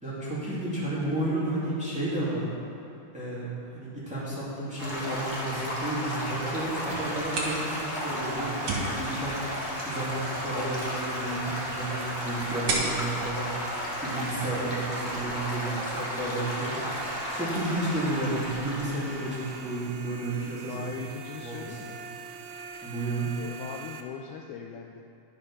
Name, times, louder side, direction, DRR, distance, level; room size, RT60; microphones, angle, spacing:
voice 1, 0.0-2.5 3.1-20.9 21.4-21.9 22.8-23.3, right 2 dB, ahead, -9 dB, 2.1 m, -32 dB
Stream / Gurgling / Trickle dribble, 4.8-19.9, left 1 dB, 40° left, 0.7 m, -34 dB
sound 1, 6.9-24.0, right 6 dB, 80° right, 1.6 m, -44 dB
sound 2, 7.0-14.6, right 2 dB, 55° right, 2.4 m, -37 dB
voice 2, 20.7-22.0 23.4-25.0, left 7 dB, 80° left, 2 dB, 1.9 m, -40 dB
11.0 x 6.9 x 5.6 m, 2.7 s
omnidirectional pair, 3.7 m